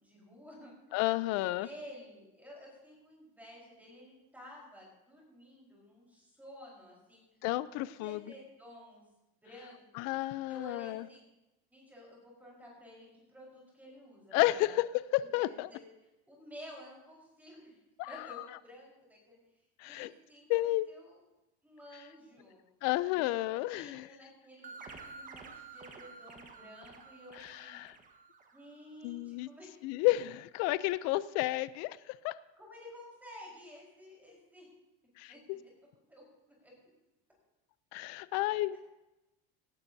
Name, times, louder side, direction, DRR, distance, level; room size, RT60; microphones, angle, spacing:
voice 1, 0.0-0.7 1.3-7.5 7.7-9.0 9.4-10.2 10.5-11.2 11.7-14.8 15.4-15.8 16.3-17.8 18.1-19.4 19.8-21.2 21.6-22.6 23.1-23.4 23.7-27.8 28.5-29.7 32.5-34.7 35.3-35.7 36.1-36.2 36.6-36.7 38.7-38.8, equal, 5° right, -4 dB, 4.4 m, -52 dB
voice 2, 0.9-1.7 7.4-8.2 9.9-11.0 14.3-14.8 15.3-15.7 18.0-18.1 19.8-20.1 20.5-20.9 22.8-24.1 27.4-28.0 29.0-29.5 29.8-32.3 35.2-35.3 37.9-38.8, left 18 dB, 60° left, 17 dB, 0.5 m, -31 dB
sound 1, 24.6-29.0, right 4 dB, 25° right, 1.3 m, -51 dB
17.5 x 11.5 x 2.7 m, 0.95 s
cardioid pair, 135°, 29 cm